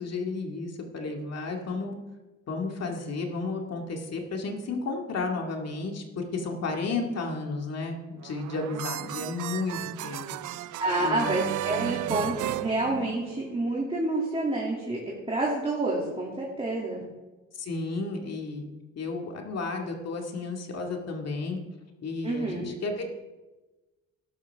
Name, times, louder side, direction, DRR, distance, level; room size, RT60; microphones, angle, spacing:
voice 1, 0.0-1.9 2.5-10.6 11.0-11.4 11.8-12.0 17.6-18.7 19.0-21.6 22.0-23.0, left 3 dB, 55° left, 2 dB, 2.2 m, -33 dB
sound 1, 8.2-13.5, right 15 dB, 75° right, 0.5 m, -34 dB
voice 2, 10.8-15.0 15.3-17.0 22.2-22.6, right 2 dB, 20° right, -3 dB, 2.7 m, -28 dB
12.0 x 11.5 x 3.6 m, 1.1 s
cardioid pair, 90°, 30 cm